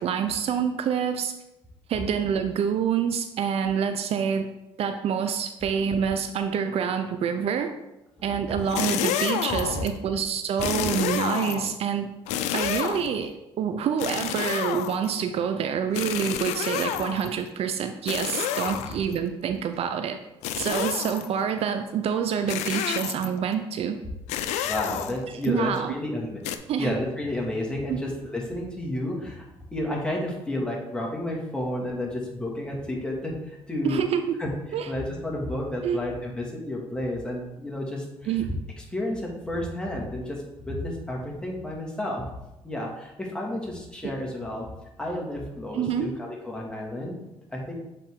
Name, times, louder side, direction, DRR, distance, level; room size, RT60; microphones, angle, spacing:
voice 1, 0.0-1.3 1.9-4.5 4.8-7.7 8.2-12.1 12.5-20.2 20.6-24.0 25.5-25.9 26.7-26.9 27.9-28.0 33.8-34.4 34.7-34.9 35.8-36.0 38.3-38.5 45.7-46.1, right 7 dB, 60° right, 7 dB, 0.5 m, -27 dB
sound 1, 8.6-9.9 10.6-11.8 12.3-13.2 14.0-15.2 15.9-17.4 18.1-19.2 20.4-21.3 22.5-23.4 24.3-25.5 26.4-26.6, left 10 dB, 85° left, 0.4 m, -29 dB
voice 2, 24.6-26.4 26.8-29.4 29.7-34.0 34.4-34.5 34.9-42.3 42.6-44.7 45.0-47.2 47.5-47.7, left 1 dB, 10° left, -2 dB, 2.0 m, -31 dB
7.4 x 3.9 x 3.7 m, 0.93 s
supercardioid pair, 75°, 11 cm